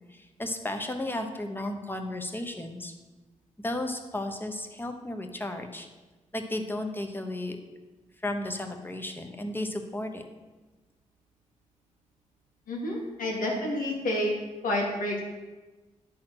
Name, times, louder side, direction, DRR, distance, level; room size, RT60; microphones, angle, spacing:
voice 1, 0.1-2.9 3.6-5.9 6.3-7.6 8.2-10.2, left 1 dB, 15° left, 5 dB, 1.1 m, -34 dB
voice 2, 12.7-14.3 14.6-15.2, left 1 dB, 90° left, -1 dB, 1.9 m, -29 dB
10.5 x 4.2 x 5.9 m, 1.2 s
cardioid pair, 70°, 14 cm